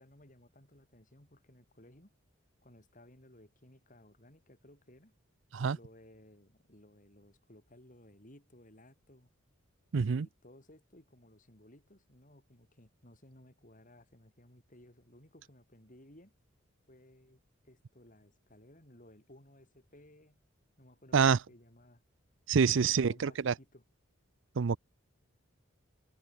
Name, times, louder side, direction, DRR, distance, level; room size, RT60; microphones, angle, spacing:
voice 1, 0.0-2.1 2.6-5.1 5.7-9.3 10.0-16.3 16.9-20.4 20.8-22.0 22.6-23.8, left 1 dB, 40° left, 5.7 m, -59 dB
voice 2, 9.9-10.3 21.1-21.4 22.5-23.5 24.6-24.8, right 6 dB, 60° right, 0.5 m, -26 dB
head